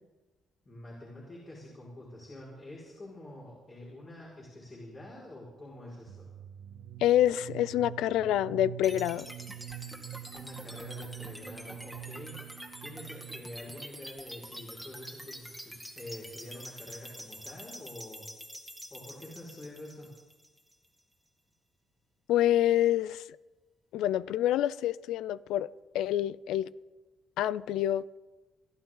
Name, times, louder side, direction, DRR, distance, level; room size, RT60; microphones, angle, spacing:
voice 1, 0.7-6.3 10.3-12.4 12.8-18.3 18.9-20.1, left 1 dB, 35° left, -5 dB, 5.2 m, -46 dB
sound 1, 6.1-13.7, right 13 dB, 80° right, 1.0 m, -45 dB
voice 2, 7.0-9.3 22.3-23.2 23.9-25.7 25.9-26.7 27.4-28.2, left 12 dB, 90° left, 19 dB, 0.4 m, -27 dB
sound 2, 8.8-20.9, equal, ahead, 2.0 m, -46 dB
28.0 x 11.5 x 3.9 m, 1.2 s
cardioid pair, 90°, 0 cm